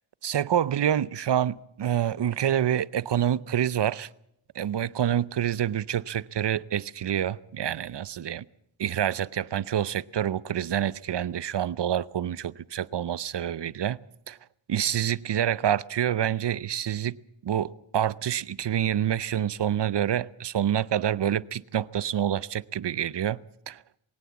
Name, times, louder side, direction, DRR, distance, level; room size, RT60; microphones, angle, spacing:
voice 1, 0.2-4.1 4.5-8.4 8.8-14.0 14.3-14.4 14.7-17.2 17.4-23.4 23.7-23.8, right 10 dB, 60° right, 0.7 m, -27 dB
21.0 x 18.0 x 7.1 m
cardioid pair, 65°, 46 cm